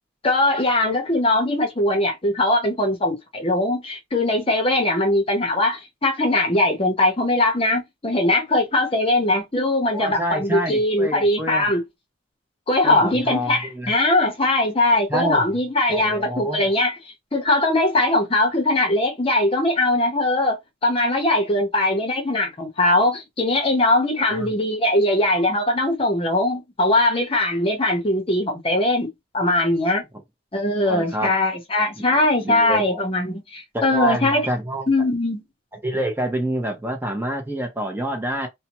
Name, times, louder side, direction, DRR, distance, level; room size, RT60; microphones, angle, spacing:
voice 1, 0.2-11.8 12.7-17.0 17.3-30.0 30.5-34.5 34.9-35.4, left 1 dB, 30° left, 0.8 m, -21 dB
voice 2, 9.8-11.7 12.8-13.9 15.1-15.5 15.9-16.7 24.3-24.5 30.8-31.3 32.0-33.0 33.7-34.8 35.8-38.5, right 1 dB, 10° right, 0.8 m, -27 dB
2.8 x 2.2 x 2.9 m
head